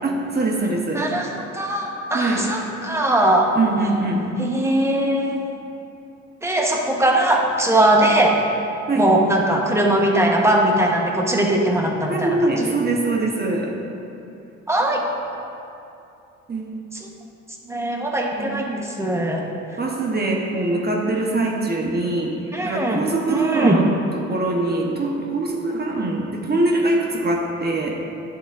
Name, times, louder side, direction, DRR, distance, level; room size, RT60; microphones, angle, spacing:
voice 1, 0.0-1.1 2.1-2.5 3.5-4.3 8.9-9.1 12.1-13.7 16.5-16.8 18.3-18.6 19.8-28.0, right 2 dB, 30° right, -1 dB, 1.0 m, -23 dB
voice 2, 0.9-3.5 3.8-3.9 4.4-5.4 6.4-8.4 9.0-12.4 12.6-12.7 14.7-15.0 16.9-17.1 17.7-19.4 22.5-23.0 23.3-23.8, right 1 dB, 10° right, 0 dB, 1.0 m, -20 dB
10.5 x 7.1 x 2.5 m, 2.7 s
cardioid pair, 90°, 30 cm